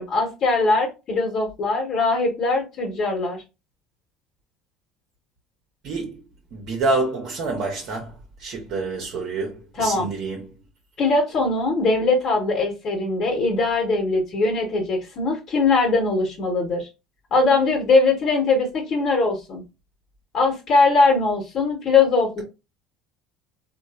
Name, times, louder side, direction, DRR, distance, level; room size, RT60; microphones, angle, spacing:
voice 1, 0.0-3.4 9.8-10.1 11.0-16.9 17.3-19.6 20.3-22.4, left 3 dB, 50° left, 1.1 m, -21 dB
voice 2, 5.8-6.2 6.5-8.1 8.4-10.6, right 3 dB, 60° right, 0.9 m, -27 dB
3.0 x 2.4 x 2.4 m
hypercardioid pair, 75°, 0 cm